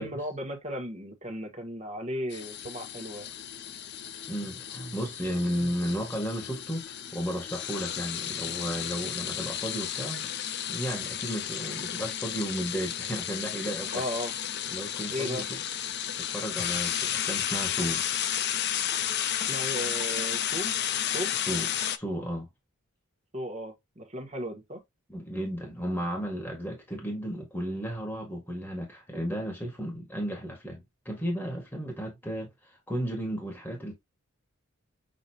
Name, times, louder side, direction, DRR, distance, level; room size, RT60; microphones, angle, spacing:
voice 1, 0.0-3.3 11.5-11.7 13.9-14.3 15.1-15.4 19.4-20.7 21.1-21.3 23.3-24.8, equal, 30° right, 1.5 m, -35 dB
sound 1, 2.3-22.0, left 10 dB, 50° left, 0.5 m, -33 dB
voice 2, 4.3-10.3 10.7-14.0 14.7-15.6 16.2-18.0 21.5-22.5 25.1-32.5 32.9-33.9, equal, 10° left, 1.6 m, -34 dB
6.6 x 2.8 x 2.8 m
head